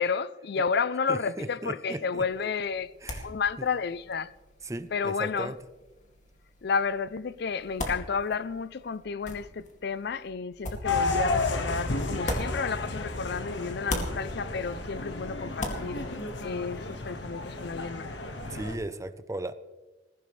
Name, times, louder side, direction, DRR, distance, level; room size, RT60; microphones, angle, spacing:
voice 1, 0.0-2.9 3.2-4.3 4.9-5.5 6.6-16.1 16.4-18.1, left 5 dB, 60° left, 0.5 m, -31 dB
voice 2, 1.1-2.5 3.0-3.3 3.6-3.7 4.6-5.6 18.5-19.5, right 1 dB, 15° right, 0.7 m, -36 dB
sound 1, 2.2-13.4 13.6-17.1, left 1 dB, 40° left, 2.5 m, -40 dB
sound 2, 10.8-18.8, left 3 dB, 80° left, 1.7 m, -32 dB
21.0 x 15.5 x 3.3 m
head